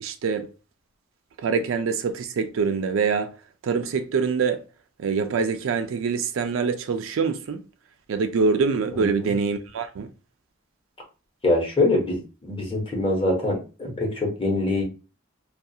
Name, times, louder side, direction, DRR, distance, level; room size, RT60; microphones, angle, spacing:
voice 1, 0.0-0.5 1.4-3.3 3.6-4.6 5.0-7.6 8.1-10.1, right 5 dB, 85° right, 0.4 m, -24 dB
voice 2, 11.4-14.8, left 2 dB, 25° left, 0.9 m, -24 dB
2.4 x 2.3 x 2.7 m
head